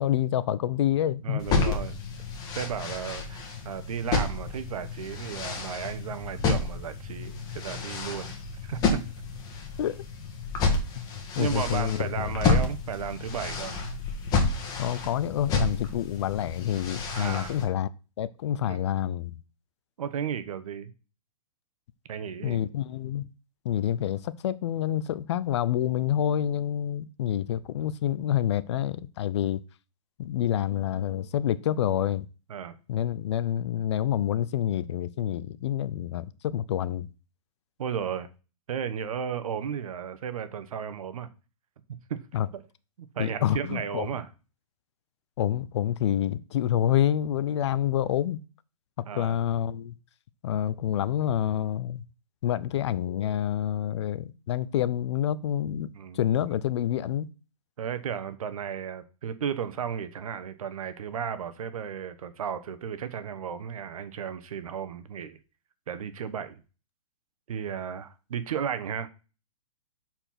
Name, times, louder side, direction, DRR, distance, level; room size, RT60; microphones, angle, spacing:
voice 1, 0.0-1.8 9.8-10.0 11.4-12.3 14.8-17.9 18.2-19.4 22.4-23.3 23.6-29.6 30.2-32.3 32.9-37.1 42.3-42.5 43.2-44.2 45.4-48.4 49.1-49.9 50.4-52.0 52.4-57.3, left 11 dB, 50° left, 0.6 m, -27 dB
voice 2, 1.2-1.9 2.5-8.4 8.6-9.0 11.4-13.8 17.1-17.6 18.7-18.8 20.0-20.9 22.1-22.6 32.5-32.8 37.8-38.3 38.7-41.3 42.1-42.2 43.0-44.3 49.1-49.4 55.9-56.2 57.8-65.4 65.9-66.6 67.5-69.1, right 8 dB, 75° right, 1.2 m, -34 dB
sound 1, 1.4-17.6, left 4 dB, 20° left, 1.7 m, -30 dB
6.9 x 4.5 x 5.8 m
hypercardioid pair, 160°, 18 cm